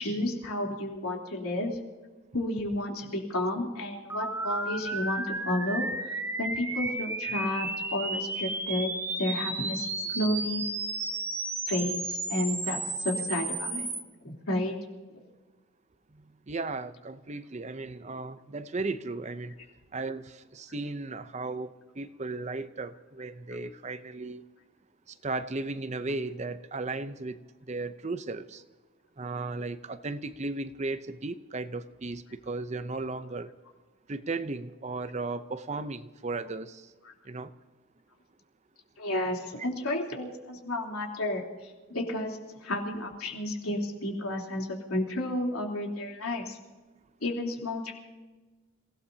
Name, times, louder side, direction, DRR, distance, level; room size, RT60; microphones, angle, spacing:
voice 1, 0.0-1.8 2.3-8.9 9.2-10.6 11.7-13.9 14.2-14.7 39.0-46.6 47.2-47.9, left 1 dB, 80° left, 0 dB, 3.4 m, -32 dB
sound 1, 4.1-14.0, right 2 dB, 10° right, 0.9 m, -33 dB
voice 2, 16.5-19.5 19.9-24.4 25.2-27.4 27.7-28.6 29.2-33.5 34.1-36.9 37.3-37.5, right 3 dB, 30° right, 12 dB, 0.6 m, -35 dB
30.0 x 17.5 x 2.8 m, 1.3 s
head